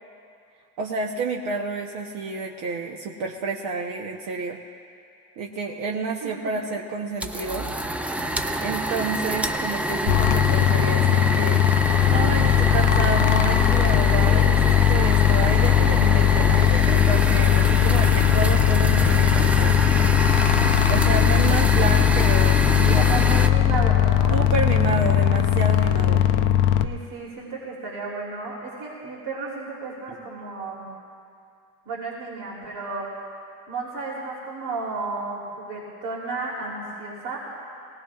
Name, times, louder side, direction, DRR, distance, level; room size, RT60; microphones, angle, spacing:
voice 1, 0.8-4.6 5.4-7.7 8.6-11.6 12.1-19.8 20.9-23.1 24.3-26.3, right 4 dB, 65° right, 0 dB, 1.0 m, -29 dB
voice 2, 6.2-6.5 23.0-24.5 26.8-30.9 31.8-33.3 33.7-37.4, right 3 dB, 90° right, -5 dB, 3.3 m, -33 dB
sound 1, 7.2-23.5, right 1 dB, 5° right, 0.3 m, -26 dB
sound 2, 10.1-26.8, left 11 dB, 85° left, 0.7 m, -19 dB
22.0 x 18.0 x 2.4 m, 2.4 s
cardioid pair, 145°, 36 cm